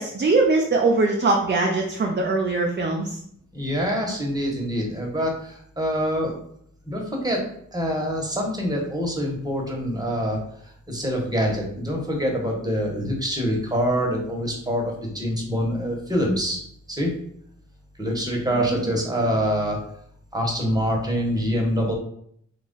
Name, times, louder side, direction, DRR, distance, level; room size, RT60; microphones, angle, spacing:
voice 1, 0.0-3.2 18.5-18.9, right 3 dB, 35° right, 0 dB, 0.5 m, -22 dB
voice 2, 3.5-6.4 6.9-7.4 7.7-10.4 10.9-16.6 16.9-17.1 18.0-19.8 20.3-21.9, equal, 10° right, -1 dB, 1.0 m, -25 dB
3.0 x 2.4 x 3.8 m, 0.67 s
wide cardioid pair, 65°, 31 cm